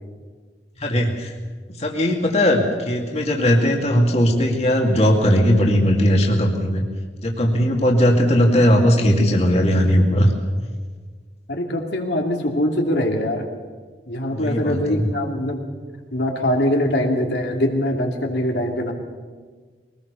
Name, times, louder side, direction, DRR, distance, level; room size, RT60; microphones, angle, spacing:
voice 1, 0.8-1.3 1.8-6.8 7.2-10.3 14.3-15.1, equal, 35° left, 0 dB, 2.5 m, -18 dB
voice 2, 11.5-13.5 14.1-15.6 16.1-18.9, left 1 dB, 75° left, 1 dB, 2.7 m, -22 dB
22.5 x 19.5 x 6.9 m, 1.5 s
head